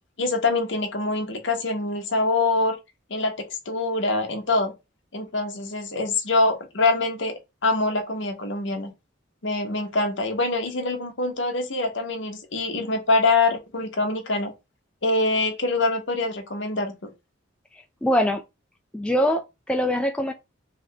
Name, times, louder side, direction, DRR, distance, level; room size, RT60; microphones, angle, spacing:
voice 1, 0.2-2.7 3.1-4.7 5.1-7.3 7.6-8.9 9.4-14.5 15.0-17.1, left 3 dB, 65° left, 1.0 m, -24 dB
voice 2, 18.0-18.4 18.9-20.3, equal, 5° left, 0.3 m, -23 dB
3.5 x 2.8 x 3.4 m
head